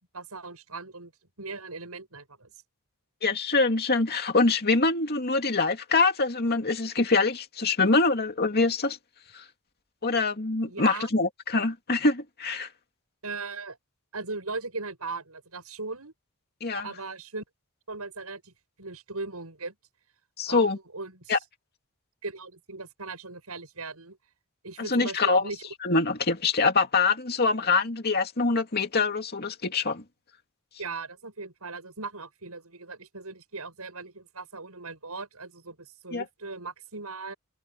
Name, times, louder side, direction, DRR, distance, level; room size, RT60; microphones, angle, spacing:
voice 1, 0.1-1.1 1.4-2.5 10.7-11.1 13.2-13.8 14.1-16.1 16.8-17.4 17.9-18.5 18.8-19.7 20.5-21.4 22.2-24.2 24.6-25.6 30.8-37.3, right 3 dB, 80° right, 7.5 m, -38 dB
voice 2, 3.2-9.0 9.3-9.4 10.0-12.7 16.6-16.9 20.4-20.8 21.3-21.4 24.9-25.4 25.8-30.0 36.1-36.2, left 3 dB, 45° left, 2.4 m, -24 dB
open air
head